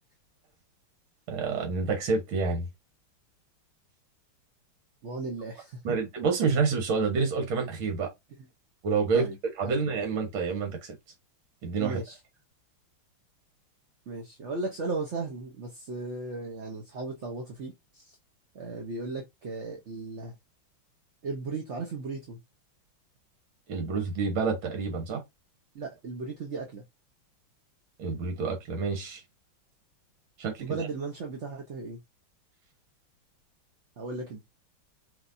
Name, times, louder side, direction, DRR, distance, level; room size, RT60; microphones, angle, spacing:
voice 1, 1.3-2.7 5.8-8.1 8.8-9.3 9.6-10.9 11.6-12.0 23.7-25.2 28.0-29.2 30.4-30.8, right 4 dB, 75° right, 2.1 m, -28 dB
voice 2, 5.0-5.8 9.1-9.4 9.6-9.7 11.8-12.2 14.1-18.2 18.5-20.3 21.2-22.4 25.7-26.8 30.6-32.0 34.0-34.4, right 3 dB, 50° right, 0.9 m, -36 dB
4.9 x 3.4 x 2.6 m
omnidirectional pair, 2.3 m